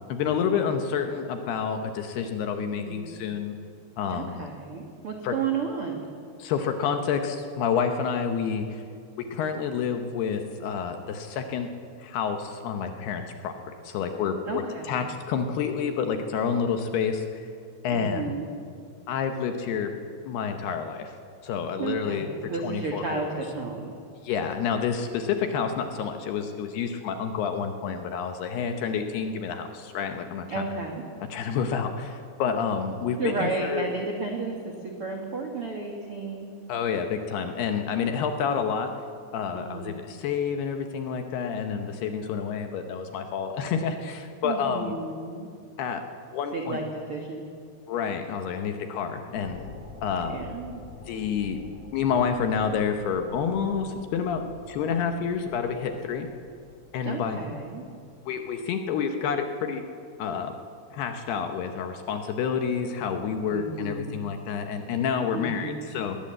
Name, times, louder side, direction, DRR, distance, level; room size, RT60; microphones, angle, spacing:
voice 1, 0.1-3.5 4.0-4.5 5.2-5.3 6.4-8.8 9.3-11.7 12.0-13.5 13.8-17.5 17.8-18.3 19.1-19.9 20.3-21.1 21.4-22.3 22.6-23.3 24.2-30.7 31.3-33.9 36.7-38.9 39.3-45.0 45.8-46.0 46.3-46.8 47.9-49.7 50.0-50.4 51.1-51.6 51.9-54.4 54.7-56.3 56.9-57.4 58.3-59.8 60.2-60.5 60.9-66.2, left 6 dB, 70° left, 6 dB, 2.6 m, -29 dB
voice 2, 2.5-3.2 4.1-6.0 14.4-15.1 17.9-18.5 21.8-24.0 30.5-31.0 33.2-34.6 34.8-36.6 39.5-40.0 44.4-45.5 46.5-47.5 50.3-50.8 57.0-57.8 63.5-64.2 65.3-65.9, right 4 dB, 65° right, 1 dB, 1.3 m, -33 dB
sound 1, 49.3-58.5, left 5 dB, 45° left, 7.3 m, -47 dB
20.5 x 19.0 x 7.7 m, 2.3 s
omnidirectional pair, 5.5 m